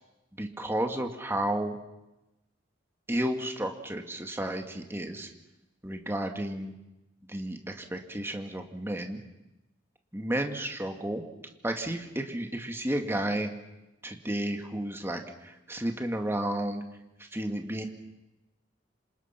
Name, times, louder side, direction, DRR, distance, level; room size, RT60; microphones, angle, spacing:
voice 1, 0.4-1.8 3.1-5.3 5.8-6.7 7.3-9.2 10.1-11.2 11.6-13.5 14.0-16.8 17.2-17.9, right 1 dB, 15° right, 4 dB, 2.0 m, -32 dB
27.0 x 27.0 x 5.9 m, 0.96 s
head